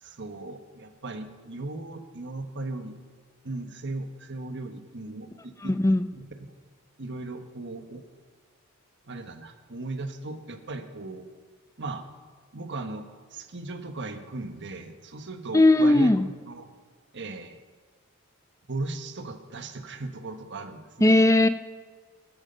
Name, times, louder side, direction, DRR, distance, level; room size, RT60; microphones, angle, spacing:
voice 1, 0.0-3.0 3.4-5.8 6.2-6.5 7.0-8.0 9.0-11.2 11.8-12.0 12.5-16.7 17.1-17.6 18.7-21.2, right 2 dB, 55° right, 7 dB, 1.4 m, -37 dB
voice 2, 5.6-6.1 15.5-16.3 21.0-21.5, left 2 dB, 15° left, 11 dB, 0.5 m, -18 dB
20.0 x 12.5 x 5.5 m, 1.5 s
head